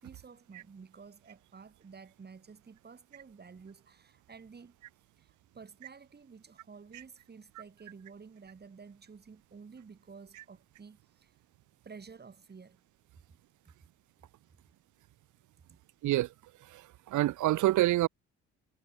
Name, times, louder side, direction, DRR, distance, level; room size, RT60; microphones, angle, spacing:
voice 1, 0.0-4.8 5.2-11.3 11.8-12.8 15.7-15.8, right 5 dB, 35° right, 3.8 m, -52 dB
voice 2, 17.1-18.1, right 15 dB, 75° right, 0.8 m, -26 dB
cardioid pair, 90°, 30 cm